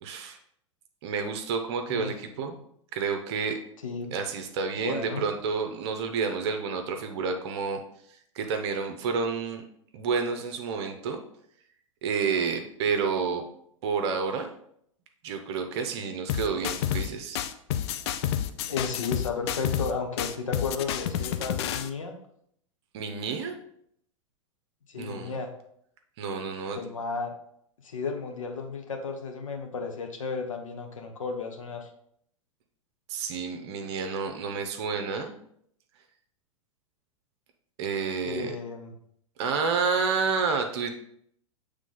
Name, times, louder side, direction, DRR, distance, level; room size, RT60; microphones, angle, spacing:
voice 1, 0.0-0.4 1.0-2.6 2.9-3.6 4.1-7.8 8.3-9.6 9.9-11.2 12.0-13.4 13.8-14.5 15.2-17.4 22.9-23.6 25.0-25.4 26.2-26.8 33.1-35.3 37.8-38.5 39.4-40.9, right 5 dB, 50° right, 5 dB, 0.7 m, -29 dB
voice 2, 3.8-4.2 4.8-5.2 18.7-22.2 24.9-25.5 26.7-27.3 27.8-31.9 38.2-38.9, left 4 dB, 75° left, 3 dB, 1.1 m, -33 dB
sound 1, 16.3-17.1 17.4-19.9 20.2-21.9, left 10 dB, 50° left, 0.5 m, -29 dB
7.4 x 3.3 x 3.8 m, 0.70 s
figure-of-eight pair, 95°, 17 cm